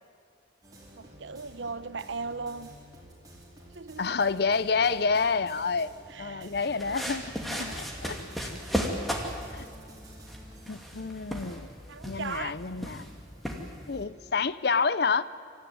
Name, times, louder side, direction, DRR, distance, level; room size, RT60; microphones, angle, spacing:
sound 1, 0.6-14.5, equal, 20° right, 4.4 m, -52 dB
voice 1, 0.9-2.7 3.7-4.1 6.1-6.5 6.8-7.0 11.9-12.6, right 4 dB, 75° right, 14 dB, 0.8 m, -38 dB
voice 2, 4.0-5.9 6.2-8.5 9.5-9.7 10.7-11.7 12.0-13.1 13.9-15.2, left 4 dB, 55° left, 16 dB, 0.6 m, -28 dB
sound 2, 6.6-14.0, equal, ahead, 2.3 m, -36 dB
26.5 x 14.5 x 9.5 m, 2.1 s
head